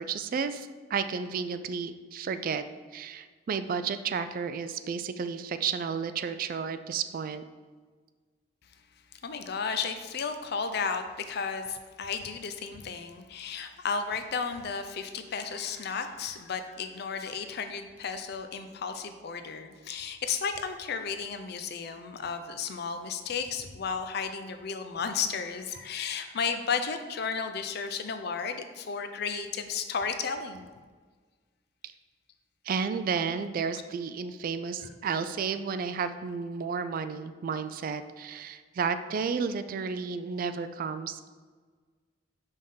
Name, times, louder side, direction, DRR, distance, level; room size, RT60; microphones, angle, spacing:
voice 1, 0.0-2.6 2.9-7.4 32.7-41.3, right 6 dB, 50° right, 11 dB, 0.3 m, -32 dB
voice 2, 9.2-30.7 34.8-34.9, left 5 dB, 60° left, 8 dB, 0.5 m, -33 dB
5.3 x 3.5 x 5.5 m, 1.5 s
head